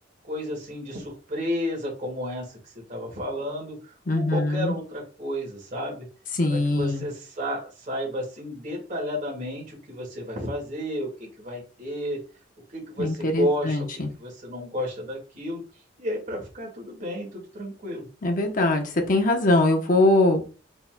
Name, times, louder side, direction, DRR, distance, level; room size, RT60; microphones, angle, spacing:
voice 1, 0.2-6.1 6.5-12.2 12.7-15.6 16.0-18.0, equal, 45° right, -1 dB, 2.0 m, -32 dB
voice 2, 4.1-4.7 6.4-7.0 13.0-14.1 18.2-20.5, left 2 dB, 45° left, 4 dB, 0.9 m, -22 dB
4.2 x 4.1 x 2.3 m, 0.36 s
head